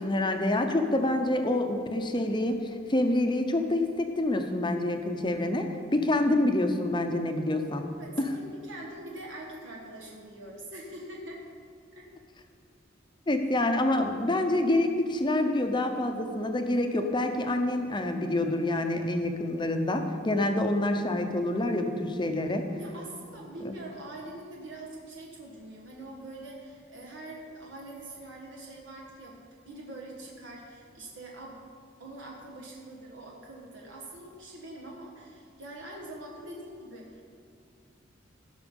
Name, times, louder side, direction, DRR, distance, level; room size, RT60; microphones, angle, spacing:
voice 1, 0.0-7.9 8.2-8.3 13.3-22.7 23.6-23.7, left 1 dB, 25° left, 6 dB, 0.8 m, -27 dB
voice 2, 8.0-11.4 11.9-12.0 22.8-29.3 29.7-31.6 32.0-37.2, right 1 dB, 70° right, -2 dB, 1.4 m, -44 dB
16.0 x 5.8 x 5.4 m, 2.2 s
head